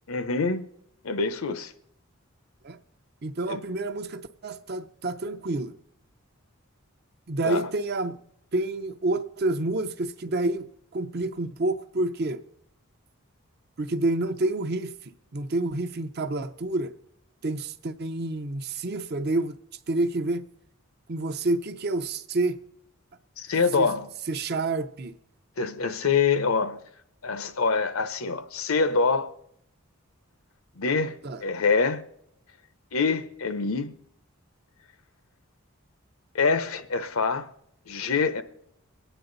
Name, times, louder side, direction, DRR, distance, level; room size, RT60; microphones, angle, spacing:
voice 1, 0.1-0.7 1.0-1.7 3.5-3.6 7.4-7.7 23.4-24.1 25.6-26.8 27.2-29.3 30.8-31.1 31.4-32.0 32.9-33.9 36.3-37.5 37.9-38.4, left 4 dB, 80° left, 0.8 m, -25 dB
voice 2, 3.2-5.8 7.3-8.2 8.5-12.4 13.8-17.0 17.4-19.6 19.9-20.4 21.1-22.6 23.8-23.9 24.3-25.1 31.2-31.4, right 2 dB, 50° right, 0.6 m, -28 dB
23.0 x 9.1 x 4.0 m
head